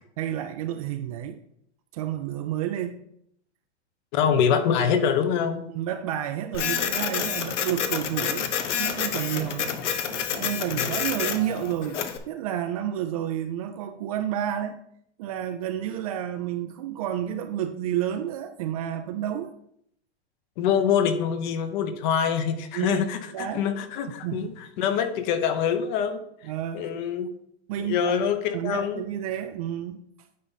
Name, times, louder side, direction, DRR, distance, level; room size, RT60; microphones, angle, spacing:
voice 1, 0.2-1.4 1.9-3.0 5.7-8.5 8.8-9.8 10.1-12.0 12.3-14.8 15.2-19.5 22.7-23.0 23.3-23.6 24.2-24.5 26.5-26.9 27.7-28.3 28.5-30.0, right 11 dB, 35° right, 0.4 m, -30 dB
voice 2, 4.1-5.7 10.7-10.9 20.6-27.3 27.8-29.0, left 7 dB, 40° left, 0.8 m, -25 dB
Printer, 6.5-12.2, left 8 dB, 85° left, 1.0 m, -28 dB
9.4 x 4.0 x 4.0 m
hypercardioid pair, 145°, 35 cm